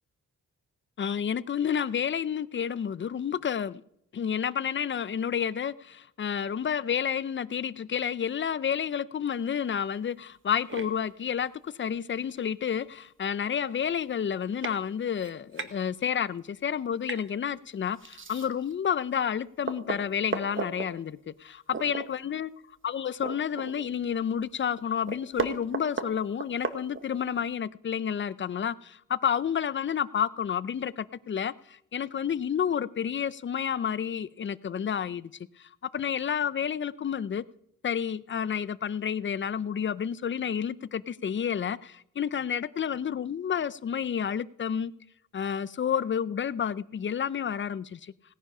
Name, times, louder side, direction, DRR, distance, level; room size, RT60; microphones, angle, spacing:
voice 1, 1.0-3.8 4.1-22.5 22.8-35.3 35.6-37.4 37.8-44.9 45.3-48.1, left 8 dB, 35° left, 0.5 m, -30 dB
sound 1, 10.7-10.9 12.4-12.5 13.0-13.1 13.3-13.6 14.2-14.3 14.6-14.8 15.2-15.7 17.0-17.3 18.0-18.7 19.2-19.3 19.6-20.9 21.7-22.1 22.4-22.5 22.9-24.0 24.4-24.5 24.8-27.3, right 5 dB, 35° right, 1.1 m, -35 dB
17.5 x 9.5 x 5.6 m
wide cardioid pair, 110°, 33 cm